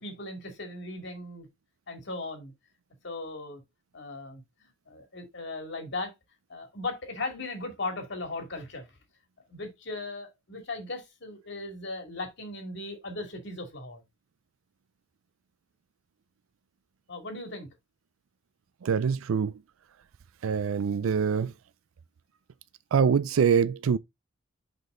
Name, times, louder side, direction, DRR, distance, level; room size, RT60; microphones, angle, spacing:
voice 1, 0.0-1.5 1.9-2.5 3.0-3.6 3.9-6.1 6.5-8.9 9.5-14.0 17.1-17.7, left 2 dB, 60° left, 2.3 m, -37 dB
voice 2, 18.8-19.6 20.4-21.5 22.9-24.0, right 6 dB, 90° right, 0.4 m, -24 dB
6.0 x 5.3 x 3.8 m
head